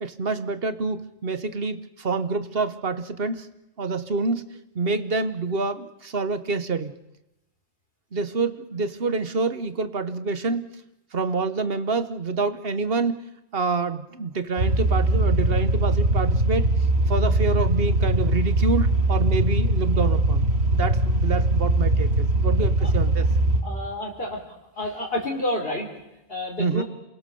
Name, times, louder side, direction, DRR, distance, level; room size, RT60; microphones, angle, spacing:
voice 1, 0.0-3.5 3.8-4.4 4.7-6.9 8.1-10.7 11.1-13.2 13.5-16.7 17.1-23.3 26.6-26.8, right 4 dB, 65° right, 11 dB, 1.4 m, -27 dB
sound 1, 14.6-23.6, right 1 dB, 80° right, 2.9 m, -21 dB
voice 2, 23.6-24.4 24.8-25.9 26.3-26.8, left 1 dB, 65° left, -1 dB, 3.9 m, -29 dB
28.0 x 21.0 x 7.0 m, 0.94 s
omnidirectional pair, 1.1 m